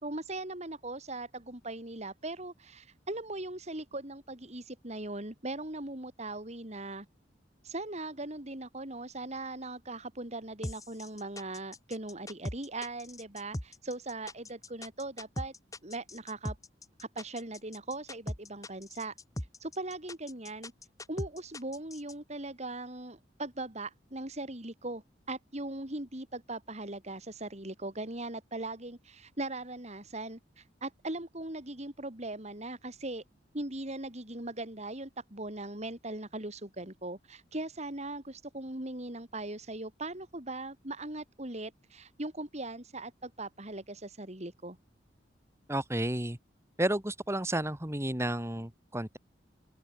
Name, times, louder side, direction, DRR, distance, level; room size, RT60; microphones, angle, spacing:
voice 1, 0.0-7.1 7.6-15.5 15.8-16.6 17.0-19.1 19.6-20.7 21.1-33.2 33.5-44.8, right 2 dB, 40° right, 3.8 m, -39 dB
sound 1, 10.6-22.1, left 1 dB, 20° left, 3.1 m, -40 dB
voice 2, 45.7-46.4 46.8-49.2, right 1 dB, 15° right, 2.7 m, -31 dB
open air
head